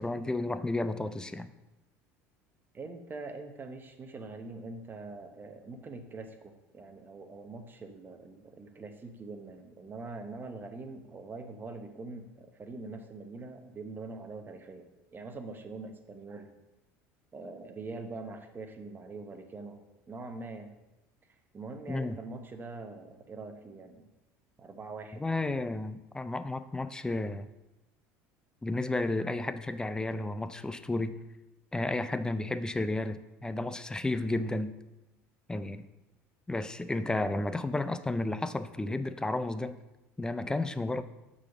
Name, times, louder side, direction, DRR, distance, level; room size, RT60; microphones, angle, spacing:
voice 1, 0.0-1.5 21.9-22.2 25.1-27.5 28.6-31.1 31.7-34.7 35.5-35.9 36.5-39.8 40.2-41.0, left 2 dB, 10° left, 12 dB, 0.5 m, -32 dB
voice 2, 2.7-16.5 17.3-20.8 21.5-24.0 24.6-25.2, right 3 dB, 30° right, 6 dB, 1.0 m, -43 dB
6.4 x 4.2 x 6.1 m, 1.0 s
supercardioid pair, 90°, 7 cm